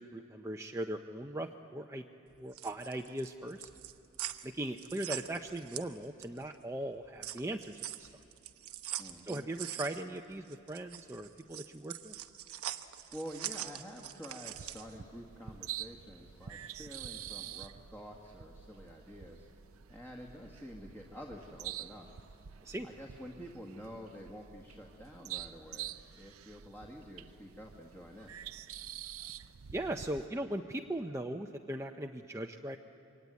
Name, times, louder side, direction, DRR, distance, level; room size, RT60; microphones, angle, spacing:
voice 1, 0.0-2.0 2.4-3.7 4.4-8.1 9.3-12.1 22.6-22.9 29.7-32.8, right 1 dB, 15° right, 3 dB, 0.6 m, -39 dB
sound 1, 2.3-6.5 6.8-14.9, right 12 dB, 90° right, 1.0 m, -43 dB
voice 2, 9.0-9.5 13.1-19.5 19.9-22.1 22.8-28.3, equal, 10° left, 0 dB, 1.8 m, -48 dB
sound 2, 14.5-30.3, right 11 dB, 70° right, 0.6 m, -47 dB
26.5 x 23.5 x 9.4 m, 2.6 s
head